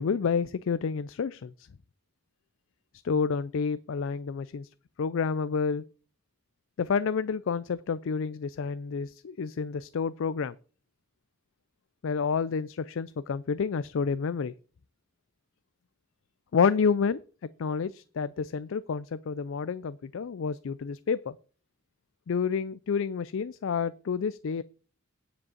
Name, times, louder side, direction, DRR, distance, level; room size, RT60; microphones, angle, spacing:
voice 1, 0.0-1.7 3.0-4.7 5.0-5.8 6.8-10.5 12.0-14.5 16.5-17.2 17.6-21.4 22.3-24.6, left 5 dB, 65° left, 16 dB, 0.4 m, -29 dB
9.6 x 5.3 x 7.1 m, 0.39 s
head